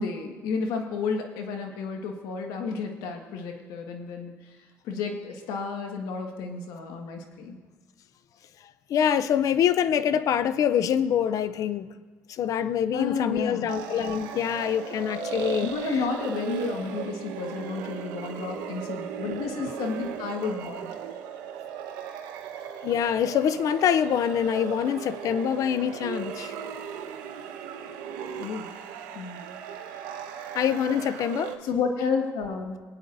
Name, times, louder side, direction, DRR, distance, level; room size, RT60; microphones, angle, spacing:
voice 1, 0.0-4.6 4.8-7.6 12.9-13.7 15.6-20.9 28.4-28.7 29.1-29.4 31.6-32.7, left 5 dB, 85° left, 1.6 m, -31 dB
voice 2, 8.9-11.9 12.3-16.0 22.8-26.5 30.5-31.6, left 9 dB, 60° left, 0.5 m, -25 dB
sound 1, 13.7-31.6, right 7 dB, 90° right, 1.1 m, -37 dB
21.0 x 9.2 x 2.6 m
cardioid pair, 105°, 7 cm